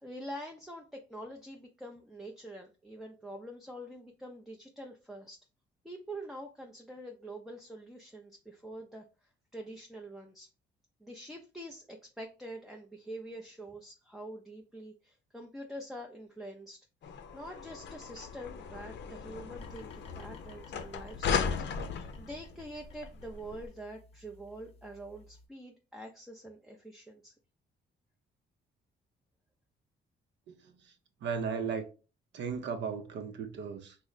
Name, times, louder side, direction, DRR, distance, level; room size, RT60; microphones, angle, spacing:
voice 1, 0.0-5.4 5.8-10.5 11.0-21.5 22.2-27.3, right 1 dB, ahead, 0.5 m, -45 dB
sound 1, 17.0-23.7, left 6 dB, 65° left, 0.5 m, -37 dB
sound 2, 19.6-25.5, left 2 dB, 30° left, 0.7 m, -57 dB
voice 2, 30.5-30.9 31.2-31.9 32.3-34.0, right 6 dB, 65° right, 0.6 m, -36 dB
3.1 x 2.0 x 3.9 m
cardioid pair, 90°, 20 cm